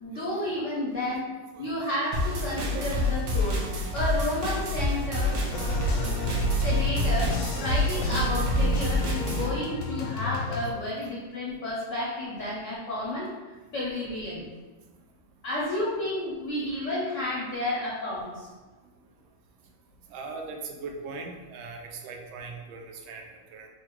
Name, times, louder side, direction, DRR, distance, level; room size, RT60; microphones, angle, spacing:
voice 1, 0.0-1.3 1.6-3.6 3.9-5.4 6.6-13.3 13.7-14.4 15.4-18.5, left 1 dB, 65° left, -5 dB, 0.8 m, -31 dB
sound 1, 2.1-9.5, left 2 dB, 70° right, 1.2 m, -28 dB
voice 2, 2.5-3.1 20.1-23.7, right 4 dB, 90° right, 2 dB, 1.4 m, -40 dB
sound 2, 5.5-10.7, equal, 85° left, 1.4 m, -29 dB
3.7 x 2.1 x 4.4 m, 1.3 s
omnidirectional pair, 2.1 m